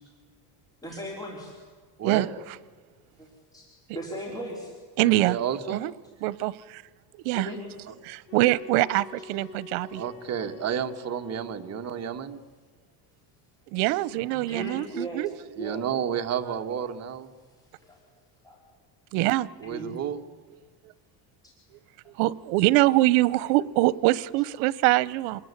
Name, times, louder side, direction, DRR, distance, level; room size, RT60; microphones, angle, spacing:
voice 1, 0.8-1.5 3.2-3.6 3.9-4.7 7.3-7.6 14.3-15.2 15.6-15.9 17.8-18.0 18.4-18.6 19.6-19.9, right 1 dB, 10° left, -1 dB, 4.2 m, -37 dB
voice 2, 2.0-2.3 5.0-5.8 9.8-12.4 15.6-17.3 19.6-20.2, right 8 dB, 30° right, 5 dB, 1.7 m, -31 dB
voice 3, 5.0-5.4 5.7-5.9 6.2-6.8 7.2-7.5 8.0-10.0 13.7-15.3 19.1-19.5 22.1-25.4, right 18 dB, 85° right, 20 dB, 1.0 m, -24 dB
sound 1, 8.2-12.2, left 6 dB, 70° left, 1.8 m, -46 dB
27.0 x 20.5 x 9.8 m, 1.5 s
cardioid pair, 145°, 48 cm